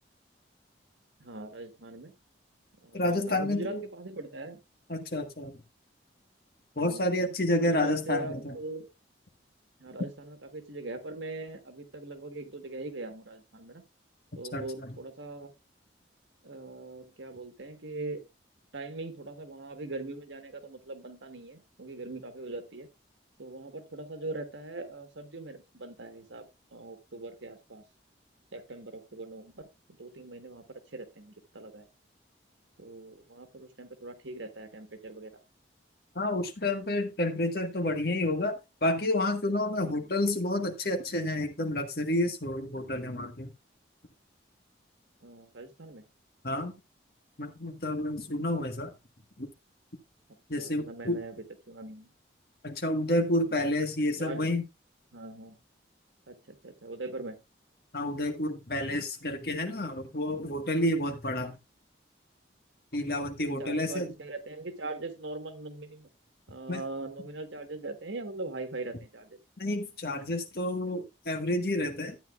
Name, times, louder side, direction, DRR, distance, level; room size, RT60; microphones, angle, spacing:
voice 1, 1.2-2.1 2.8-4.6 6.8-7.1 7.6-8.9 9.8-13.8 14.4-15.5 16.4-18.2 18.7-22.9 23.4-27.8 28.5-30.6 30.9-31.9 32.8-35.3 39.9-40.1 45.2-46.0 50.6-51.3 51.7-52.1 54.2-54.4 55.1-55.6 56.3-57.4 60.3-60.5 63.6-66.1 66.5-69.4, right 2 dB, 90° right, 8 dB, 1.5 m, -41 dB
voice 2, 2.9-3.8 4.9-5.6 6.7-8.6 14.5-15.0 36.1-43.5 46.4-46.7 47.4-48.9 49.4-49.5 50.5-51.2 52.6-54.6 57.9-61.6 62.9-64.1 66.7-66.8 69.6-72.2, left 1 dB, 55° left, 6 dB, 1.5 m, -30 dB
12.5 x 8.9 x 2.4 m, 0.24 s
head